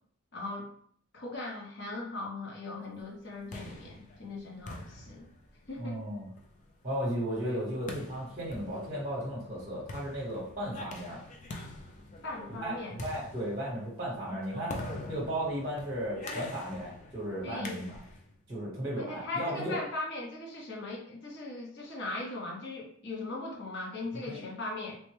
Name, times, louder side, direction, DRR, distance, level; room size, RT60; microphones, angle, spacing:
voice 1, 0.3-0.7 1.1-5.3 5.7-6.0 12.2-13.0 17.4-17.8 18.9-25.0, left 2 dB, 50° left, -2 dB, 0.8 m, -39 dB
sound 1, 3.2-18.3, left 2 dB, 35° left, 0.3 m, -45 dB
voice 2, 5.8-6.3 6.8-11.2 12.6-14.7 15.1-18.0 18.5-19.8 24.1-24.4, equal, 30° right, -6 dB, 0.9 m, -35 dB
3.3 x 2.1 x 3.1 m, 0.62 s
head